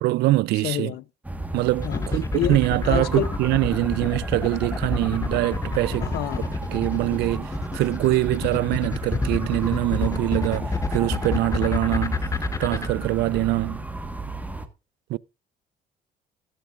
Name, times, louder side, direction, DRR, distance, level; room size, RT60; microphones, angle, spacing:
voice 1, 0.0-0.9 1.5-6.1 6.7-12.2 12.6-13.9 15.1-15.2, right 18 dB, 80° right, 0.4 m, -24 dB
voice 2, 0.6-1.0 1.8-2.0 2.3-3.3 6.0-6.5, left 14 dB, 70° left, 0.6 m, -28 dB
sound 1, 1.2-14.7, right 2 dB, 10° right, 1.4 m, -33 dB
sound 2, 1.8-12.9, left 4 dB, 20° left, 0.8 m, -28 dB
14.5 x 12.0 x 2.4 m
cardioid pair, 110°, 17 cm